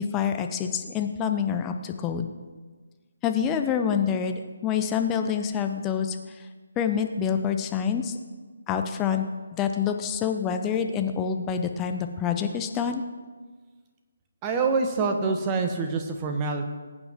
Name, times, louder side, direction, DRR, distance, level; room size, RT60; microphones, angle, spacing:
voice 1, 0.0-2.3 3.2-6.2 6.8-8.2 8.7-9.3 9.5-13.0, left 7 dB, 15° left, 6 dB, 0.9 m, -27 dB
voice 2, 14.4-16.8, right 4 dB, 20° right, 4 dB, 1.4 m, -26 dB
20.5 x 9.0 x 3.7 m, 1.4 s
figure-of-eight pair, 150°, 0 cm